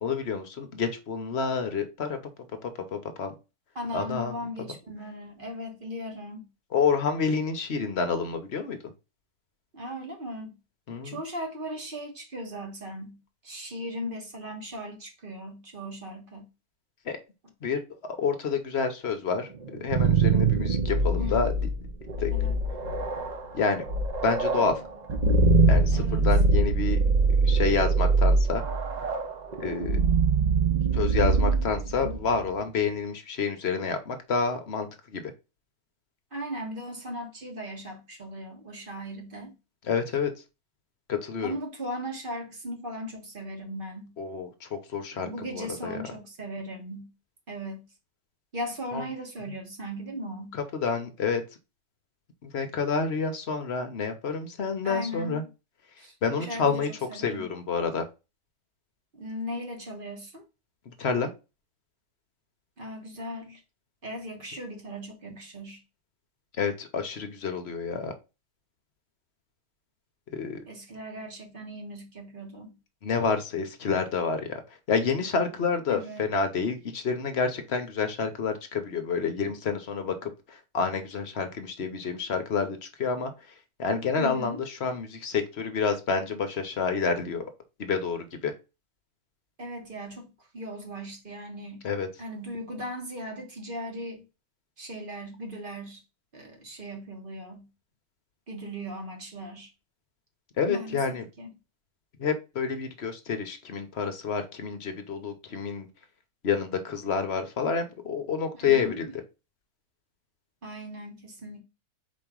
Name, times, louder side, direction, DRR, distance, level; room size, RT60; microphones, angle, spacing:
voice 1, 0.0-2.2 2.6-3.3 3.9-4.4 6.7-8.8 10.9-11.2 17.1-17.2 17.6-17.8 18.2-21.5 22.2-22.3 23.5-23.8 24.2-24.8 25.7-27.0 27.4-28.6 29.6-30.0 30.9-35.3 39.9-40.3 41.1-41.5 44.2-45.9 48.9-49.0 50.5-51.4 52.4-55.4 56.2-58.1 60.9-61.3 66.6-68.1 70.3-70.6 73.0-74.6 74.9-83.3 83.8-87.5 87.8-88.5 91.8-92.1 100.6-101.3 102.2-105.9 106.4-109.1, left 5 dB, 50° left, 0.9 m, -29 dB
voice 2, 3.7-6.5 9.7-10.6 11.0-13.2 13.4-16.5 21.2-21.5 22.3-22.6 25.9-26.3 36.3-39.5 41.4-44.1 45.2-47.1 47.5-47.9 48.5-50.6 54.8-55.5 56.0-57.5 59.1-60.4 62.8-63.6 64.0-65.8 70.7-72.8 75.9-76.2 84.2-84.6 89.6-91.9 92.2-94.3 94.8-96.0 96.3-97.7 98.5-99.7 100.6-101.5 108.6-109.2 110.6-111.6, equal, 35° right, 1.4 m, -38 dB
sound 1, 19.6-32.5, right 3 dB, 65° right, 0.4 m, -24 dB
4.7 x 3.0 x 3.5 m
omnidirectional pair, 1.6 m